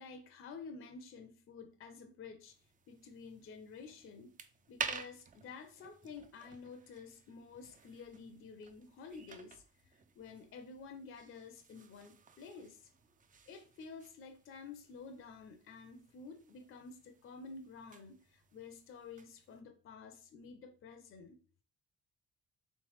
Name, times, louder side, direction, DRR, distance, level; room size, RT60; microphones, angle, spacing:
voice 1, 0.0-2.6 2.9-4.4 4.7-12.9 13.5-21.4, left 5 dB, 45° left, 0.5 m, -51 dB
sound 1, 2.5-19.6, right 5 dB, 30° right, 0.4 m, -51 dB
3.3 x 3.2 x 3.1 m
cardioid pair, 90°, 30 cm